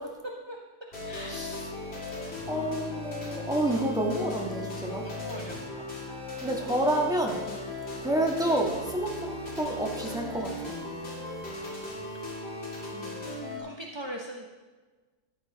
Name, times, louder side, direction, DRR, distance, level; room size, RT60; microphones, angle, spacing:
voice 1, 0.2-0.6 1.0-1.6 2.5-3.5 4.9-5.9 7.9-8.2 12.1-12.4 12.9-13.3 13.6-14.5, right 1 dB, 25° right, -1 dB, 0.6 m, -42 dB
sound 1, 0.9-13.6, left 2 dB, 40° left, 2.9 m, -37 dB
voice 2, 2.5-5.0 6.4-7.4 8.0-9.3 9.6-10.8, right 1 dB, 5° right, 0 dB, 1.3 m, -29 dB
13.5 x 9.6 x 4.1 m, 1.3 s
omnidirectional pair, 1.7 m